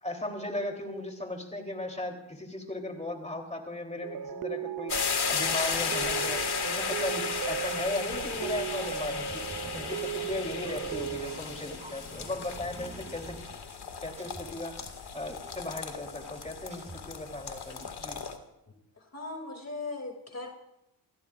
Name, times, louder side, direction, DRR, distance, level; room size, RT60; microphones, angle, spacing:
voice 1, 0.0-13.4 13.8-14.8 15.1-18.2, left 2 dB, 15° left, 3 dB, 3.3 m, -37 dB
sound 1, 4.0-11.4, right 9 dB, 55° right, 0.5 m, -36 dB
sound 2, 4.9-18.4, left 6 dB, 60° left, 2.1 m, -35 dB
sound 3, 8.3-18.3, right 1 dB, 15° right, 2.8 m, -49 dB
voice 2, 19.0-20.5, left 3 dB, 35° left, 2 dB, 2.7 m, -38 dB
27.5 x 16.0 x 2.5 m, 0.84 s
cardioid pair, 65°, 43 cm